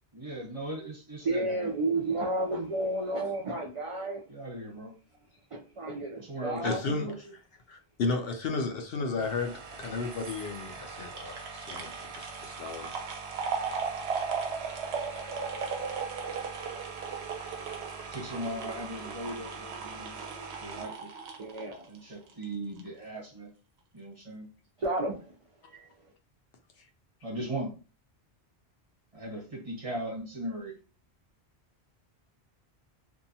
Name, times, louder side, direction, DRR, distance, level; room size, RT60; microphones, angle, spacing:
voice 1, 0.1-1.6 4.3-4.9 6.2-7.2 18.1-20.2 20.6-21.1 21.9-23.5 23.9-24.5 27.2-27.7 29.1-30.7, right 1 dB, 35° right, 1.1 m, -38 dB
voice 2, 1.2-4.2 5.5-6.8 21.4-21.9 22.4-22.5 24.8-25.3 25.6-26.1, right 2 dB, 55° right, 0.3 m, -32 dB
voice 3, 6.6-7.1 7.7-9.5 9.8-12.9, left 4 dB, 70° left, 0.7 m, -33 dB
sound 1, 9.2-22.4 22.8-22.9, right 5 dB, 85° right, 0.9 m, -37 dB
2.7 x 2.2 x 2.6 m
omnidirectional pair, 1.1 m